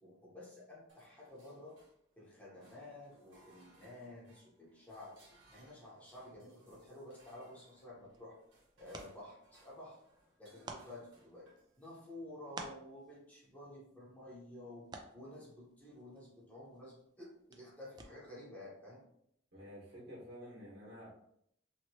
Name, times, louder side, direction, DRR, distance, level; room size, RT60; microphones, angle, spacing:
voice 1, 0.0-1.8 2.2-5.2 5.5-8.4 8.8-10.0 10.4-11.5 11.8-19.0, left 1 dB, 10° left, -6 dB, 0.9 m, -52 dB
sound 1, 0.9-2.2 2.5-12.0, right 1 dB, 90° right, 1.2 m, -67 dB
sound 2, 7.8-18.5, right 3 dB, 25° right, 0.3 m, -55 dB
voice 2, 19.5-21.1, equal, 60° right, -6 dB, 1.4 m, -50 dB
2.9 x 2.8 x 2.8 m, 0.72 s
head